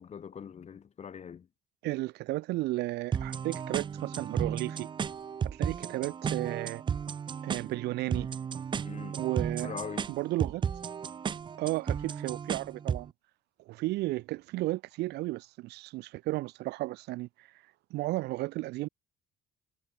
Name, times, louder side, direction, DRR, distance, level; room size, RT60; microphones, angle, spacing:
voice 1, 0.0-1.5 8.8-9.2 9.6-10.1, left 7 dB, 40° left, 3.3 m, -42 dB
voice 2, 1.8-4.9 5.4-6.8 7.4-8.3 9.1-9.7 10.1-10.6 11.6-13.1 13.7-17.5 17.9-18.9, right 19 dB, 80° right, 0.6 m, -33 dB
sound 1, 3.1-13.1, right 7 dB, 30° right, 0.5 m, -34 dB
cardioid pair, 110°, 17 cm